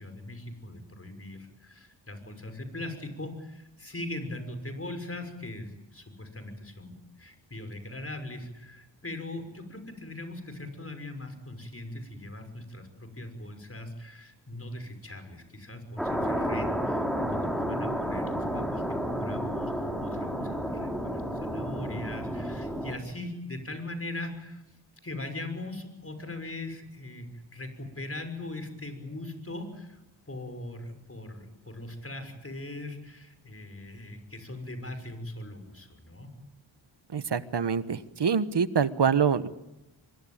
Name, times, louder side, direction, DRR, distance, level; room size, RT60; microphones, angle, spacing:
voice 1, 0.0-24.6 25.0-36.3, left 2 dB, 30° left, 8 dB, 6.0 m, -40 dB
sound 1, 16.0-23.0, equal, ahead, 5.8 m, -31 dB
voice 2, 37.1-39.5, right 6 dB, 65° right, 13 dB, 1.4 m, -25 dB
24.5 x 22.5 x 9.0 m, 0.92 s
wide cardioid pair, 70°, 45 cm